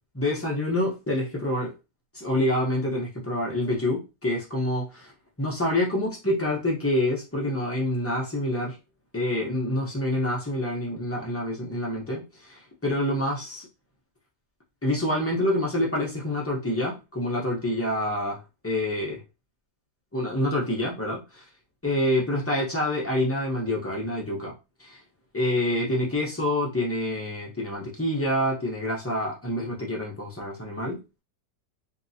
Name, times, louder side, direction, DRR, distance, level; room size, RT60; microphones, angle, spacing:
voice 1, 0.1-1.7 2.1-5.1 5.4-8.7 9.1-13.7 14.8-18.4 18.6-19.2 20.1-21.4 21.8-24.5 24.8-25.0 25.3-31.2, left 1 dB, 15° left, -3 dB, 0.5 m, -27 dB
2.9 x 2.8 x 2.7 m, 0.27 s
omnidirectional pair, 1.8 m